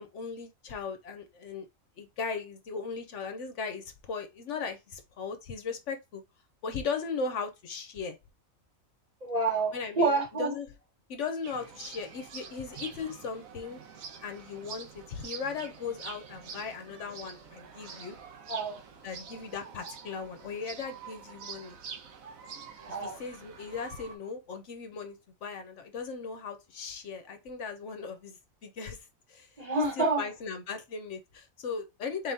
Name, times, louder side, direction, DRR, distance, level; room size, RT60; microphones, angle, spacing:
voice 1, 0.0-1.7 2.0-6.2 6.6-8.2 9.7-10.7 11.1-13.8 14.2-18.2 19.0-21.8 22.9-29.6 30.0-32.3, left 5 dB, 65° left, 0.9 m, -38 dB
voice 2, 9.2-10.6 18.5-18.8 22.8-23.2 29.6-30.3, right 3 dB, 30° right, 1.1 m, -28 dB
sound 1, 11.4-24.2, right 6 dB, 80° right, 1.2 m, -46 dB
4.1 x 3.5 x 2.6 m
omnidirectional pair, 1.4 m